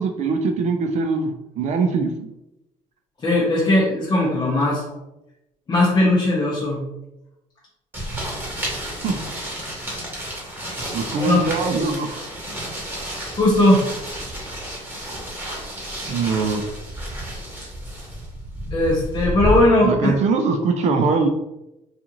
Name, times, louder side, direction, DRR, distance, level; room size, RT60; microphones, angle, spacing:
voice 1, 0.0-2.3 9.0-9.1 10.9-12.1 14.5-14.6 16.1-16.6 19.8-21.3, right 4 dB, 60° right, 5 dB, 0.4 m, -22 dB
voice 2, 3.2-4.8 5.7-6.8 11.2-11.4 13.1-13.8 18.7-20.2, left 1 dB, 30° left, -7 dB, 0.7 m, -18 dB
sound 1, 7.9-19.6, right 1 dB, 15° right, 1.1 m, -31 dB
2.4 x 2.4 x 2.9 m, 0.92 s
cardioid pair, 110°, 13 cm